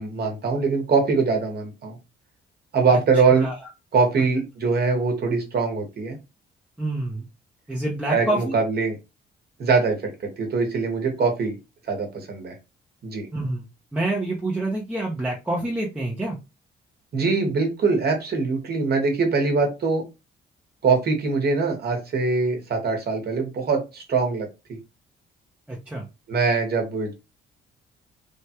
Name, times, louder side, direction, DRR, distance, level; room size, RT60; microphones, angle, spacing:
voice 1, 0.0-2.0 2.7-3.5 3.9-6.2 8.1-8.9 9.6-10.0 10.2-11.6 11.9-12.6 13.0-13.3 17.1-20.0 20.8-24.8 26.3-27.1, right 4 dB, 55° right, 3 dB, 1.2 m, -23 dB
voice 2, 3.3-3.7 6.8-7.3 7.7-8.6 13.3-13.7 13.9-16.4 25.7-26.0, right 1 dB, 5° right, -3 dB, 0.7 m, -27 dB
3.3 x 2.2 x 2.9 m, 0.26 s
cardioid pair, 90°, 20 cm